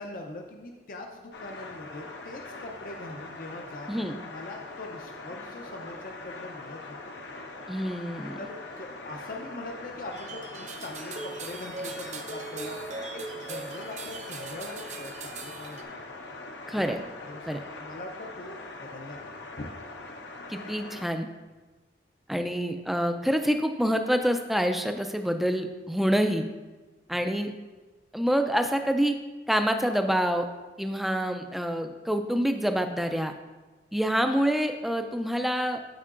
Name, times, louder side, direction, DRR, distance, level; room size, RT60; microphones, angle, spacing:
voice 1, 0.0-6.8 7.0-7.2 8.4-15.9 16.7-19.7 27.1-27.2, left 2 dB, 50° left, 2 dB, 0.5 m, -42 dB
sound 1, 1.3-21.1, left 3 dB, 85° left, 0.8 m, -42 dB
voice 2, 7.7-8.4 16.7-17.0 17.5-17.6 20.5-21.3 22.3-26.4 27.1-27.5 28.1-29.2 29.5-30.5 30.8-33.3 33.9-35.8, equal, ahead, 6 dB, 0.3 m, -26 dB
sound 2, 10.1-15.8, right 4 dB, 40° right, 0.6 m, -40 dB
12.5 x 4.5 x 2.5 m, 1.2 s
head